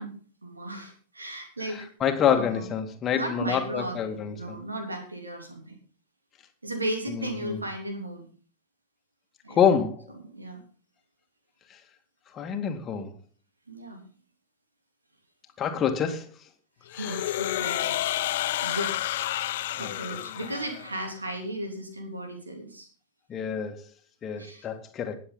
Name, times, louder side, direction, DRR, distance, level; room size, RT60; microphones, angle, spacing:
voice 1, 0.0-1.9 2.3-2.6 3.1-5.7 6.6-8.3 9.4-9.6 10.2-10.6 13.7-14.0 17.0-19.0 19.8-22.9 24.3-24.7, right 1 dB, 80° right, 4 dB, 3.3 m, -35 dB
voice 2, 1.7-4.6 7.1-7.6 9.5-10.0 12.3-13.1 15.6-16.3 16.9-17.2 19.8-19.9 23.3-23.9 24.2-25.2, left 8 dB, 25° left, 5 dB, 2.2 m, -27 dB
sound 1, 16.9-21.0, left 14 dB, 55° left, 0.5 m, -30 dB
20.5 x 7.8 x 4.0 m, 0.39 s
figure-of-eight pair, 90°, 0 cm